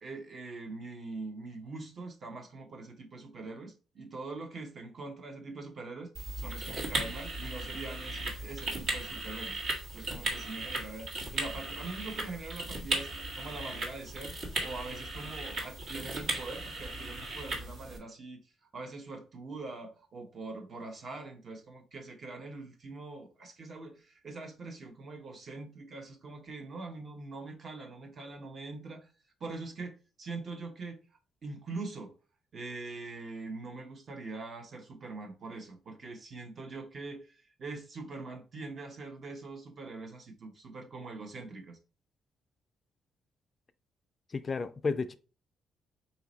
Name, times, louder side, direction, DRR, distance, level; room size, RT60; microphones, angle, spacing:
voice 1, 0.0-9.6 9.9-13.1 13.4-14.4 14.6-18.5 18.7-29.1 29.4-31.0 31.4-32.1 32.5-41.8, right 3 dB, 50° right, 1.0 m, -43 dB
sound 1, 6.2-18.0, right 2 dB, 65° right, 1.6 m, -37 dB
voice 2, 44.3-45.1, left 4 dB, 35° left, 0.4 m, -32 dB
4.1 x 2.8 x 3.9 m
cardioid pair, 90°, 0 cm